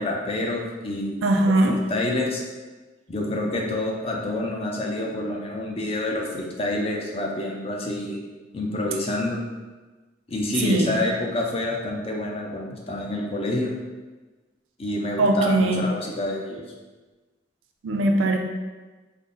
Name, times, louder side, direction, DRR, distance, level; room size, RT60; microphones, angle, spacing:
voice 1, 0.0-2.4 3.1-8.2 8.5-9.4 10.3-13.7 14.8-16.6, left 1 dB, 30° left, -1 dB, 0.5 m, -28 dB
voice 2, 1.2-1.8 10.6-10.9 15.2-15.8 17.8-18.4, right 2 dB, 90° right, 3 dB, 0.5 m, -20 dB
3.6 x 2.1 x 3.8 m, 1.3 s
head